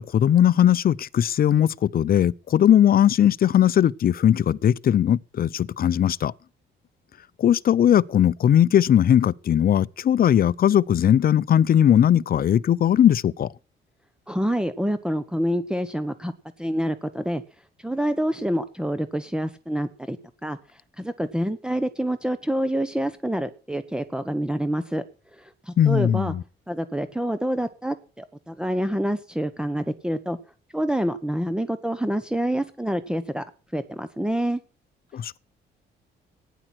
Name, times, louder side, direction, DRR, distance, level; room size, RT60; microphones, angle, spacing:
voice 1, 0.0-6.3 7.4-13.5 25.8-26.4 35.1-35.4, left 10 dB, 50° left, 0.6 m, -19 dB
voice 2, 14.3-16.3 16.6-17.4 17.8-20.2 20.4-25.0 25.3-26.3 26.7-30.4 30.7-33.4 33.7-34.6, equal, 5° right, 1.1 m, -27 dB
16.5 x 10.0 x 6.1 m
cardioid pair, 90°, 20 cm